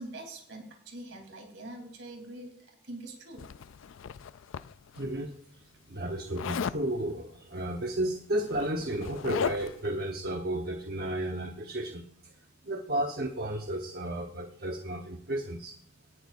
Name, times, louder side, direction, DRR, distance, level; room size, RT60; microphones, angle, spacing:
voice 1, 0.0-3.5, right 2 dB, 65° right, 3 dB, 3.2 m, -44 dB
Zipper (clothing), 3.4-5.0 6.4-6.8 8.0-8.1 8.4-9.9, left 6 dB, 65° left, 0.4 m, -36 dB
voice 2, 5.0-5.6 5.9-12.3 12.6-15.8, right 1 dB, 50° right, 3 dB, 1.0 m, -33 dB
18.0 x 11.0 x 2.5 m, 0.64 s
head